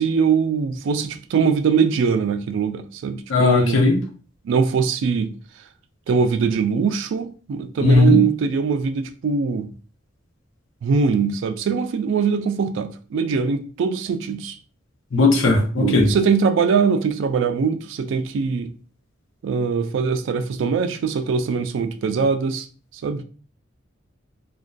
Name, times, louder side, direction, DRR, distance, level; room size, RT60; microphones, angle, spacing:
voice 1, 0.0-3.9 4.4-5.6 6.1-9.7 10.8-14.6 15.8-18.7 19.4-22.7 22.9-23.2, right 5 dB, 65° right, 0.3 m, -22 dB
voice 2, 3.3-4.0 7.8-8.2 15.1-16.1, left 2 dB, 75° left, 0.6 m, -16 dB
2.5 x 2.2 x 2.2 m
head